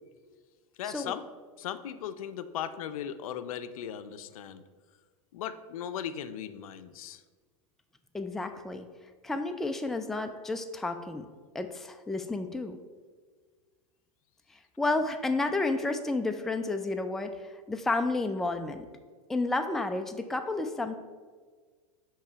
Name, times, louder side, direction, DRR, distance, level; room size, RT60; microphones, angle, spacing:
voice 1, 0.8-1.2 1.6-4.6 5.3-7.2, left 9 dB, 75° left, 11 dB, 0.5 m, -37 dB
voice 2, 8.1-8.9 9.2-11.3 11.5-12.8 14.8-18.9 19.3-21.0, left 2 dB, ahead, 6 dB, 0.3 m, -31 dB
6.6 x 3.1 x 5.5 m, 1.5 s
hypercardioid pair, 110°, 18 cm